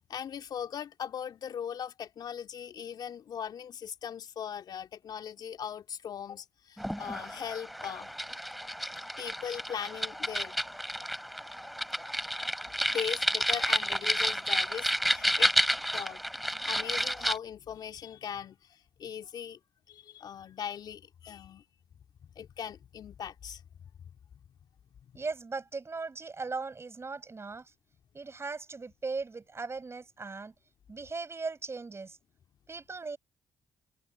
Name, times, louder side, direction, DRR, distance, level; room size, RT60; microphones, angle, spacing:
voice 1, 0.1-8.1 9.2-10.6 12.9-15.5 15.9-16.2 16.7-19.6 19.9-21.6 22.2-23.6 25.0-25.1, left 8 dB, 60° left, 3.2 m, -39 dB
sound 1, 6.8-17.4, equal, ahead, 3.9 m, -31 dB
voice 2, 25.1-27.7 28.1-30.5 30.9-32.2 32.7-33.2, right 4 dB, 35° right, 7.9 m, -38 dB
hypercardioid pair, 50°, 8 cm